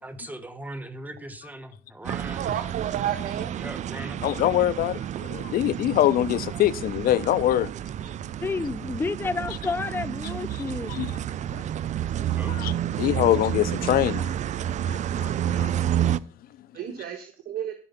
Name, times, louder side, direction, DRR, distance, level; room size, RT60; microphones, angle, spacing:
voice 1, 0.0-2.5 3.6-4.2 12.4-12.6, right 1 dB, 10° right, 1.3 m, -39 dB
sound 1, 2.0-16.2, right 10 dB, 45° right, 0.4 m, -30 dB
voice 2, 2.3-3.5 14.0-14.1 16.8-17.7, right 10 dB, 65° right, 1.2 m, -31 dB
voice 3, 4.2-7.7 10.9-11.1 11.5-11.6 12.5-12.7 13.0-14.3 14.9-15.7, left 13 dB, 60° left, 0.5 m, -24 dB
voice 4, 8.4-11.1, left 4 dB, 15° left, 0.5 m, -30 dB
14.0 x 5.0 x 5.7 m
cardioid pair, 110°, 17 cm